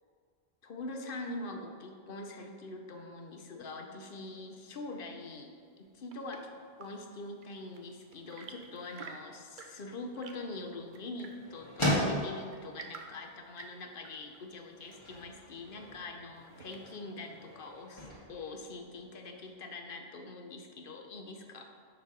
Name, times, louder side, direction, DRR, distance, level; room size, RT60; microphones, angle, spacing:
voice 1, 0.6-6.4 6.8-21.7, left 2 dB, 60° left, 3 dB, 0.9 m, -44 dB
Chirp tweet / Engine / Tap, 5.7-17.2, right 5 dB, 55° right, 0.8 m, -53 dB
sound 1, 9.8-19.5, equal, 30° left, 1.7 m, -39 dB
7.0 x 4.2 x 6.0 m, 2.1 s
omnidirectional pair, 1.0 m